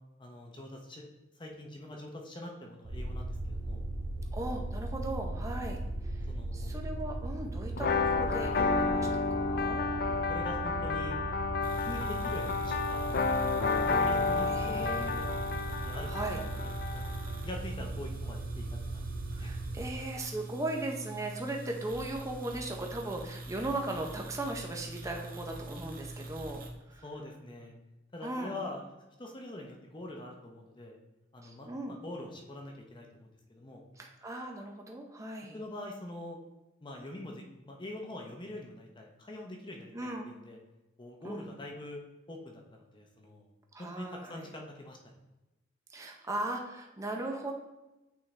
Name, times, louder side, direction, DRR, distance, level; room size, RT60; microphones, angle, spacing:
voice 1, 0.2-1.0 1.4-3.8 6.3-6.7 10.1-11.2 11.8-15.3 15.8-16.1 16.6-19.0 19.4-19.6 27.0-27.7 28.1-28.8 29.2-31.0 31.3-33.8 35.5-36.4 36.8-40.6 41.0-42.0 42.3-43.5 43.8-45.0, left 1 dB, 25° left, 1 dB, 0.7 m, -44 dB
sound 1, 2.8-19.9, right 2 dB, 75° right, 1.0 m, -38 dB
voice 2, 4.3-6.2 6.5-9.9 14.5-15.1 16.1-16.4 19.3-26.6 26.9-27.0 28.2-28.6 31.4-32.0 34.0-35.6 39.9-40.3 41.2-41.5 43.7-44.5 45.9-47.5, right 2 dB, 15° right, 1 dB, 0.6 m, -38 dB
sound 2, 7.8-17.4, left 4 dB, 50° left, 0.4 m, -31 dB
sound 3, 11.6-26.7, right 2 dB, 50° right, 0.8 m, -44 dB
8.8 x 3.7 x 3.2 m, 1.0 s
head